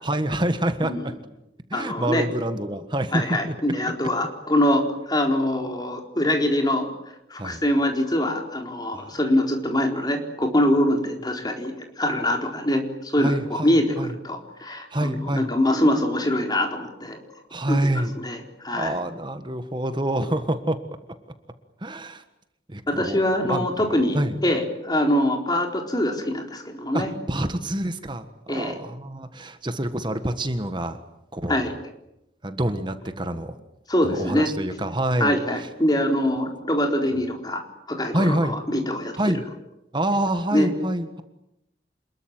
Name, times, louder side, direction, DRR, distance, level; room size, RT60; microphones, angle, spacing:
voice 1, 0.0-1.1 1.7-3.5 7.4-7.6 8.9-9.2 13.2-14.1 14.9-15.5 17.5-18.1 18.7-20.8 21.8-22.2 22.7-24.4 26.9-31.0 31.3-31.7 32.4-33.6 34.0-35.7 38.1-38.5 39.2-39.4 39.9-41.2, right 1 dB, 25° right, 9 dB, 1.5 m, -27 dB
voice 2, 1.7-2.2 3.1-6.9 7.3-14.0 14.2-17.2 17.7-17.9 18.2-18.9 22.9-27.1 28.5-28.7 31.5-31.7 33.9-34.5 35.2-39.1 40.5-40.7, left 1 dB, 25° left, 3 dB, 4.1 m, -24 dB
27.5 x 21.5 x 9.0 m, 0.85 s
head